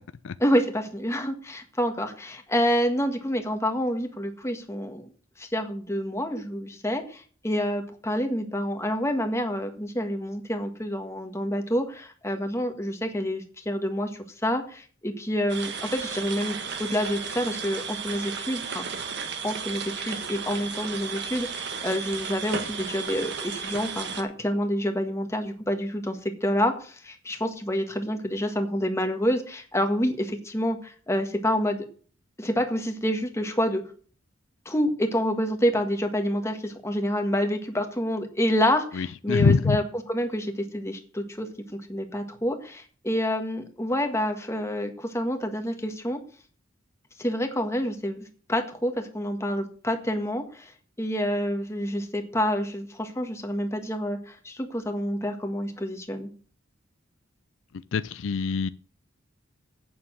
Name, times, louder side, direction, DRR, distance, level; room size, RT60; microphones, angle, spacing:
voice 1, 0.4-5.1 5.4-18.8 19.4-31.9 32.4-33.8 34.6-39.8 40.1-46.2 47.2-50.7 51.0-56.3, equal, 15° left, 1.6 m, -28 dB
sound 1, 15.5-24.2, right 6 dB, 60° right, 1.5 m, -34 dB
voice 2, 38.9-39.8 57.7-58.7, left 5 dB, 70° left, 0.4 m, -24 dB
8.6 x 7.1 x 8.7 m
head